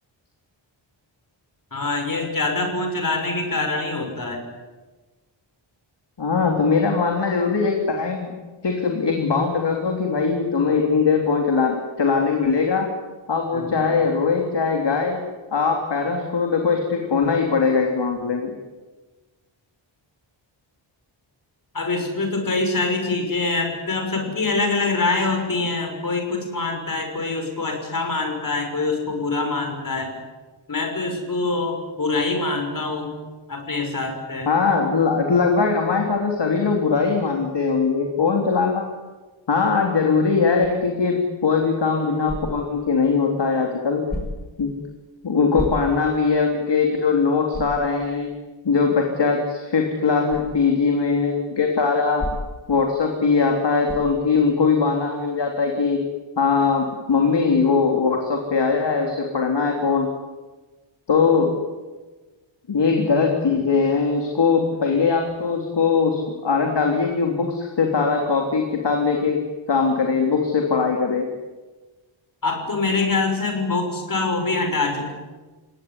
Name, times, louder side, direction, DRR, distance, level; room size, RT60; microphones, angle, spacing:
voice 1, 1.7-4.4 13.5-13.8 21.7-30.1 30.7-33.2 33.5-34.5 72.4-75.1, left 3 dB, 40° left, 4 dB, 6.4 m, -24 dB
voice 2, 6.2-8.3 8.6-12.9 13.3-15.2 15.5-18.6 34.4-38.9 39.5-44.0 44.6-44.7 45.2-48.3 48.6-52.2 52.7-56.0 56.4-60.2 61.1-61.5 62.7-71.3, left 5 dB, 60° left, 2 dB, 3.5 m, -21 dB
sound 1, 42.2-42.8 44.1-44.6 45.5-46.2 46.7-46.8 47.5-47.9 50.3-50.5 52.2-52.7 53.8-54.2, left 1 dB, 20° left, 6.2 m, -31 dB
29.5 x 18.0 x 9.9 m, 1.3 s
wide cardioid pair, 140°, 48 cm